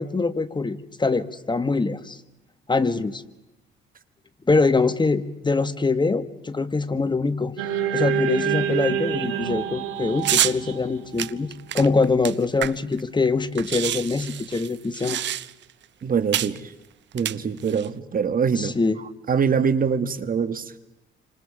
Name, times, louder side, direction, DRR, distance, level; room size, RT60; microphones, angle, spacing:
voice 1, 0.0-2.2 2.7-3.2 4.5-7.5 7.9-15.2 18.5-19.0, left 3 dB, 25° left, 12 dB, 1.4 m, -23 dB
sound 1, 7.6-11.9, right 9 dB, 90° right, 2.4 m, -27 dB
sound 2, 10.2-10.6 11.2-13.0 13.3-13.4 13.5-15.7 16.3-16.6 17.1-17.9, right 11 dB, 65° right, 0.8 m, -27 dB
voice 2, 16.0-16.7 17.1-18.7 19.3-20.6, right 6 dB, 45° right, 13 dB, 1.6 m, -23 dB
29.5 x 26.0 x 4.9 m, 0.97 s
cardioid pair, 90°, 20 cm